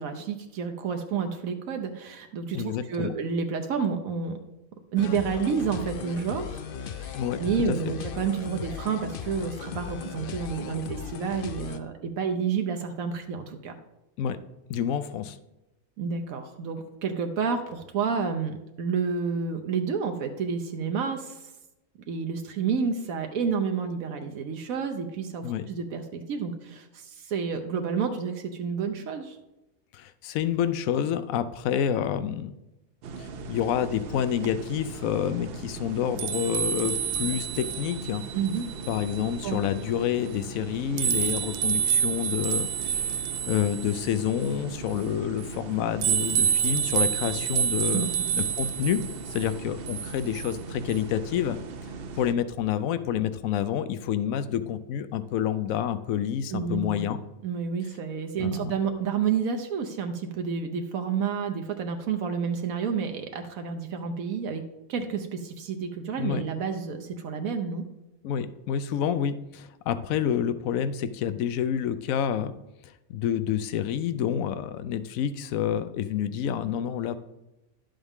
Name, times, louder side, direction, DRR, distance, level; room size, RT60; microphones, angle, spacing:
voice 1, 0.0-4.4 4.9-13.8 16.0-21.4 22.1-29.4 38.3-38.7 39.4-39.6 47.9-48.1 56.5-57.0 57.4-64.6 64.9-67.8, right 6 dB, 80° right, 5 dB, 1.2 m, -30 dB
voice 2, 2.5-3.1 7.1-7.4 7.7-7.9 14.2-14.4 14.7-15.4 25.4-25.7 29.9-32.5 33.2-38.2 38.9-43.2 43.4-48.1 48.3-51.6 52.2-57.2 58.4-58.7 66.2-66.4 68.2-72.5 72.8-77.2, left 9 dB, 80° left, 13 dB, 1.0 m, -28 dB
sound 1, 5.0-11.8, left 8 dB, 60° left, 0.6 m, -37 dB
sound 2, 33.0-52.3, right 8 dB, 60° right, 0.7 m, -30 dB
11.0 x 7.2 x 3.6 m, 0.94 s
omnidirectional pair, 1.4 m